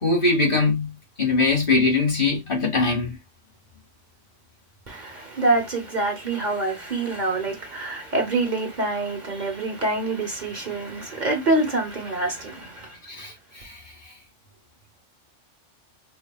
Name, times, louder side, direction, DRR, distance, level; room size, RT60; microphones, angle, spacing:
voice 1, 0.0-0.9 1.2-3.2 13.1-13.8, left 3 dB, 45° left, 1.8 m, -22 dB
voice 2, 4.9-13.0, right 2 dB, 40° right, 1.1 m, -26 dB
5.1 x 2.6 x 2.2 m
omnidirectional pair, 1.3 m